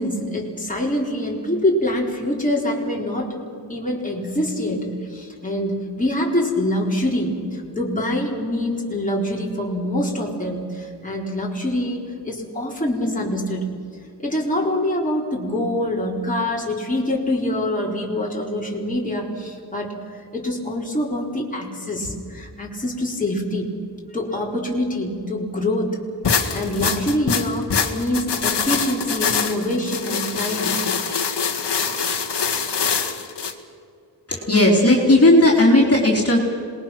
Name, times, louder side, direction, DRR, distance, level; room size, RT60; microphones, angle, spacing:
voice 1, 0.0-3.4 3.7-13.7 14.2-19.9 20.3-23.8 24.1-26.0 26.5-30.8, left 1 dB, 20° left, -3 dB, 4.3 m, -25 dB
sound 1, 26.2-33.5, left 6 dB, 70° left, 1.9 m, -24 dB
voice 2, 34.3-36.4, left 1 dB, 35° left, -2 dB, 4.1 m, -15 dB
27.0 x 21.0 x 6.1 m, 2.3 s
cardioid pair, 70°, 42 cm